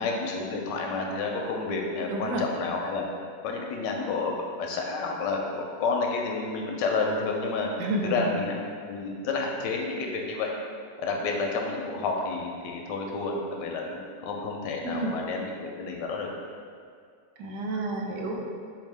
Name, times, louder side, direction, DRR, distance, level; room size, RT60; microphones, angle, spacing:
voice 1, 0.0-3.1 3.4-7.7 8.0-8.5 8.8-10.5 11.0-16.3, left 4 dB, 90° left, 1 dB, 1.2 m, -30 dB
voice 2, 2.1-2.5 7.8-8.3 14.8-15.2 17.4-18.6, right 2 dB, 85° right, 0 dB, 1.3 m, -30 dB
4.1 x 3.6 x 3.3 m, 2.2 s
omnidirectional pair, 1.8 m